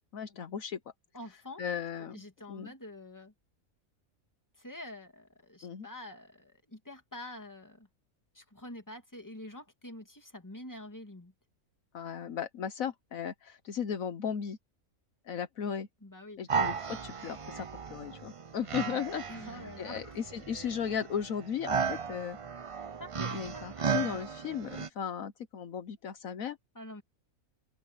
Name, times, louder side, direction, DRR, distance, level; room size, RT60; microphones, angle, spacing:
voice 1, 0.1-0.8 1.6-2.2 2.5-2.7 5.6-5.9 11.9-14.6 15.3-15.9 16.4-19.2 19.8-22.4 23.2-26.6, left 8 dB, 70° left, 1.3 m, -36 dB
voice 2, 1.1-1.6 2.1-3.3 4.6-7.9 8.3-11.3 16.0-16.5 19.3-20.2 23.0-23.4 23.8-24.0 26.7-27.0, left 1 dB, 10° left, 2.4 m, -46 dB
sound 1, 16.5-24.9, right 6 dB, 50° right, 0.3 m, -35 dB
open air
omnidirectional pair, 1.5 m